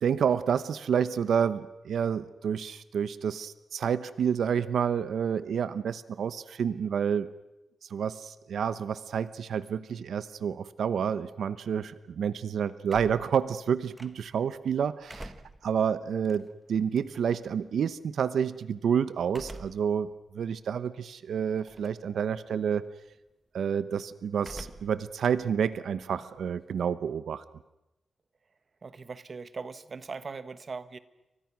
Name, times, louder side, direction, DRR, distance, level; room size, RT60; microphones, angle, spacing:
voice 1, 0.0-7.3 7.9-15.3 15.6-22.9 23.5-27.4, right 7 dB, 80° right, 14 dB, 0.9 m, -29 dB
sound 1, 12.9-14.5 14.9-17.5 19.3-19.9 20.4-20.5 21.6-22.1 22.4-22.8 24.4-25.0 25.3-26.7, right 1 dB, 10° right, 1.5 m, -47 dB
voice 2, 28.8-31.0, right 4 dB, 40° right, 13 dB, 1.2 m, -40 dB
29.5 x 24.5 x 6.1 m, 0.94 s
wide cardioid pair, 150°, 0 cm